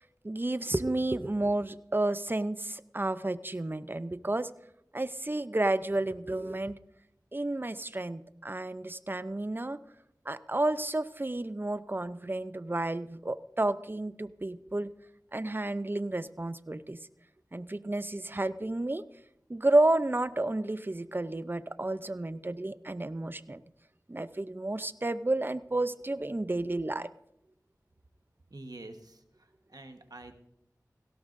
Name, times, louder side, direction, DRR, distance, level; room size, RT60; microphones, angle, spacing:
voice 1, 0.2-4.5 4.9-6.8 7.3-9.8 10.3-14.9 15.3-17.0 17.5-19.0 19.5-23.6 24.1-27.1, right 2 dB, 30° right, 13 dB, 0.6 m, -31 dB
voice 2, 28.5-29.2 29.7-30.3, right 2 dB, 70° right, 6 dB, 1.3 m, -46 dB
17.5 x 16.5 x 2.6 m, 0.76 s
wide cardioid pair, 50°, 7 cm